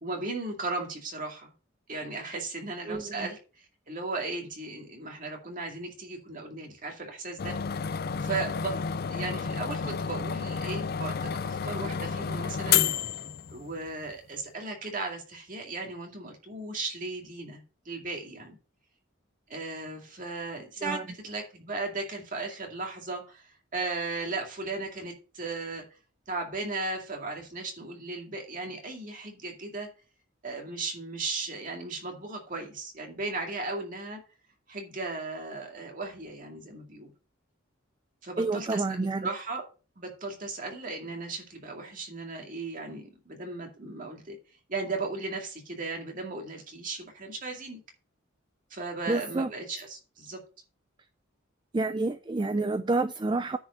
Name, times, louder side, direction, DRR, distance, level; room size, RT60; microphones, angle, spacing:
voice 1, 0.0-1.5 1.9-7.7 8.2-12.8 13.5-18.6 19.5-25.9 26.3-29.9 30.4-34.2 34.7-37.1 38.2-39.6 40.0-44.4 44.7-47.8 48.7-50.4, right 3 dB, 40° right, 2.2 m, -36 dB
voice 2, 2.9-3.3 20.8-21.0 38.4-39.3 49.1-49.5 51.7-53.6, right 3 dB, 20° right, 0.4 m, -29 dB
sound 1, 7.4-13.9, left 7 dB, 50° left, 0.4 m, -30 dB
9.7 x 4.8 x 5.2 m
head